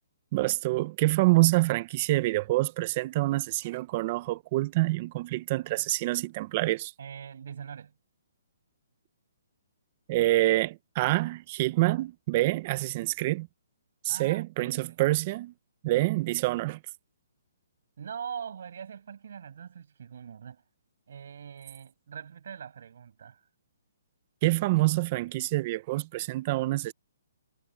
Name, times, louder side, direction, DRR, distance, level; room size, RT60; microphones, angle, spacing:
voice 1, 0.3-6.9 10.1-13.5 14.0-15.5 15.8-16.8 24.4-26.9, right 19 dB, 35° right, 0.9 m, -26 dB
voice 2, 7.0-7.9 14.1-14.9 18.0-20.6 21.1-23.4, right 7 dB, 65° right, 6.9 m, -42 dB
hypercardioid pair, 155°, 0 cm